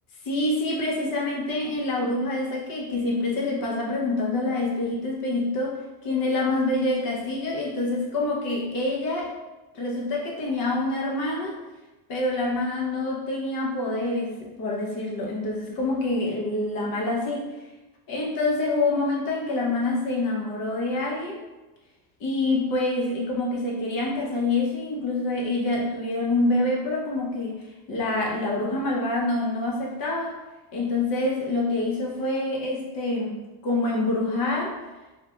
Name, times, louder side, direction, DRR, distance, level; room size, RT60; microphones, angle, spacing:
voice 1, 0.2-5.8 6.0-9.3 9.7-11.6 12.1-17.5 18.1-21.4 22.2-27.6 27.9-30.4 30.7-33.4 33.6-34.8, left 2 dB, 50° left, -2 dB, 0.9 m, -26 dB
3.3 x 2.2 x 2.4 m, 1.1 s
cardioid pair, 125°, 46 cm